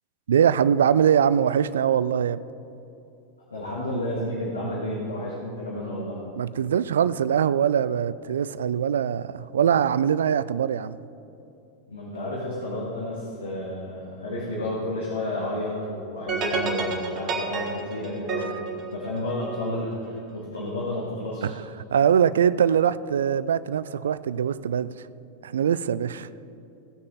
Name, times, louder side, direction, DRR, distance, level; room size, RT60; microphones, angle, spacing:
voice 1, 0.3-2.4 6.4-11.0 21.4-21.5 21.9-25.0 25.4-26.3, right 8 dB, 65° right, 0.3 m, -22 dB
voice 2, 3.5-6.2 11.9-21.6, left 1 dB, 75° left, 2.1 m, -31 dB
sound 1, 16.3-19.7, right 4 dB, 30° right, 1.7 m, -30 dB
17.0 x 6.4 x 4.0 m
figure-of-eight pair, 90°, 0 cm